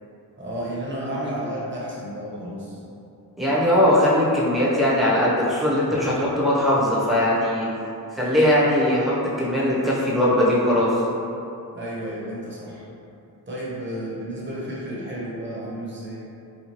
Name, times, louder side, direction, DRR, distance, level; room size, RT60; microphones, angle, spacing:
voice 1, 0.4-2.8 11.7-12.8 13.5-16.2, right 1 dB, 30° right, -6 dB, 0.8 m, -32 dB
voice 2, 3.4-7.7 8.1-10.9, left 1 dB, ahead, -8 dB, 0.7 m, -20 dB
4.2 x 2.3 x 3.0 m, 2.7 s
wide cardioid pair, 130°, 37 cm